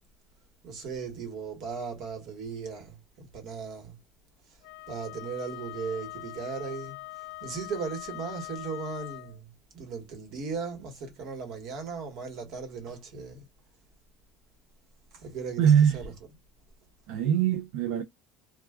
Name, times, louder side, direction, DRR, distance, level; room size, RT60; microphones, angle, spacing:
voice 1, 0.6-4.0 4.9-7.0 7.4-13.4 15.1-16.1, right 5 dB, 55° right, 1.2 m, -37 dB
Wind instrument woodwind instrument, 4.6-9.4, left 19 dB, 60° left, 0.3 m, -42 dB
voice 2, 15.6-16.0 17.1-18.0, right 8 dB, 75° right, 0.4 m, -22 dB
2.3 x 2.2 x 3.5 m
cardioid pair, 155°, 0 cm